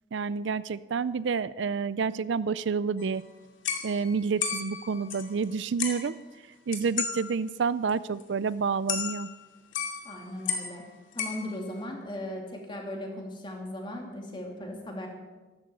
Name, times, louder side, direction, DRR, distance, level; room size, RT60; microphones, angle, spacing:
voice 1, 0.1-3.2 3.8-6.1 6.7-9.3, right 5 dB, 70° right, 17 dB, 0.4 m, -29 dB
sound 1, 3.0-3.2 3.6-5.5 5.8-6.2 6.7-7.2 7.5-7.6 7.9-8.0 8.2-8.3 8.9-9.5 9.7-10.8 11.1-11.8, left 6 dB, 85° left, 2.4 m, -34 dB
voice 2, 10.0-10.8 11.1-15.1, left 1 dB, 25° left, 1 dB, 2.7 m, -37 dB
14.0 x 13.0 x 6.9 m, 1.2 s
head